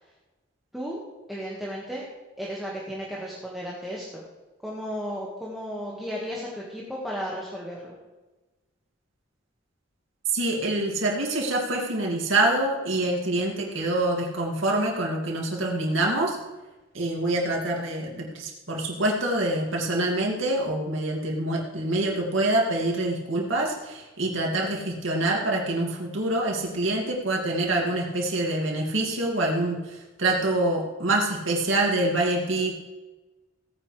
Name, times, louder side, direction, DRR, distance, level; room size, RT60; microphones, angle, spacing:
voice 1, 1.3-2.0 2.4-4.2 4.6-8.0, equal, ahead, -5 dB, 1.6 m, -34 dB
voice 2, 10.3-16.4 16.9-32.7, right 2 dB, 80° right, -1 dB, 2.3 m, -26 dB
17.0 x 9.7 x 3.3 m, 1.2 s
head